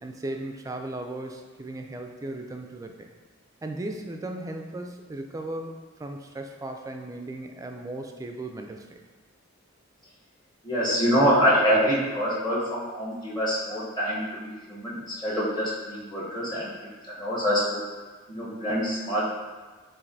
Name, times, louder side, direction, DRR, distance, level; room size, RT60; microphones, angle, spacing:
voice 1, 0.0-3.1 3.6-5.7 6.0-9.0, right 2 dB, 15° right, 4 dB, 0.3 m, -36 dB
voice 2, 10.6-16.7 17.0-17.8 18.3-19.2, equal, 20° left, -7 dB, 0.9 m, -25 dB
7.1 x 2.5 x 2.6 m, 1.3 s
head